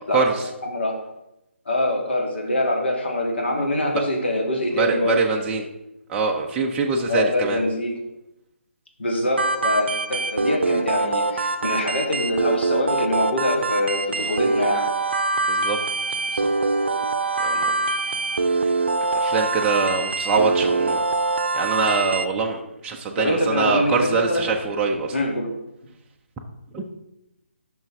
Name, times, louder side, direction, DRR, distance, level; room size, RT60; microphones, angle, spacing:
voice 1, 0.1-0.5 4.7-5.7 6.1-7.6 15.5-15.8 16.3-16.5 17.4-17.8 18.5-18.8 19.1-21.0 21.5-25.1 26.7-26.8, right 4 dB, 10° right, 0 dB, 0.6 m, -24 dB
voice 2, 0.6-1.0 1.7-5.2 7.1-7.9 9.0-14.9 23.2-24.5 25.1-25.5, left 1 dB, 60° left, 0 dB, 2.4 m, -24 dB
sound 1, 9.4-22.3, right 3 dB, 55° right, 0.7 m, -24 dB
10.0 x 6.1 x 3.5 m, 0.88 s
figure-of-eight pair, 145°, 7 cm